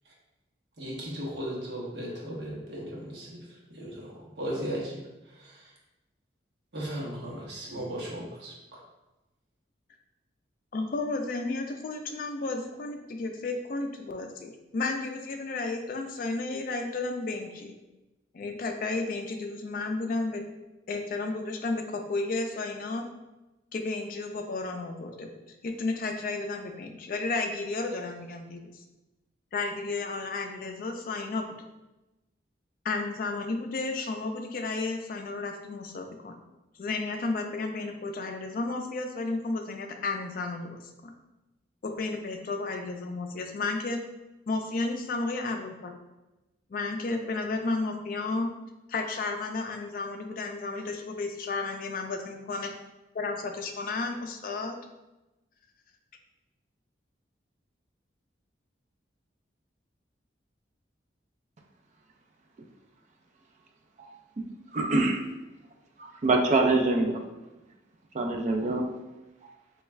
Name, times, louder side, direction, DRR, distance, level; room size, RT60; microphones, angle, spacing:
voice 1, 0.8-3.4 3.8-4.1 4.4-5.0 6.7-8.5, equal, 65° right, -4 dB, 0.9 m, -36 dB
voice 2, 10.7-17.7 18.3-20.4 20.9-23.1 23.7-25.3 25.6-28.7 29.5-31.5 32.8-36.4 36.8-41.1 41.8-44.0 44.5-45.9 46.7-48.5 48.9-52.7 53.1-54.8, left 3 dB, 50° left, 4 dB, 0.3 m, -32 dB
voice 3, 64.7-65.2 66.2-67.2 68.1-68.8, right 2 dB, 40° right, 3 dB, 0.3 m, -24 dB
3.4 x 2.3 x 3.1 m, 1.0 s
head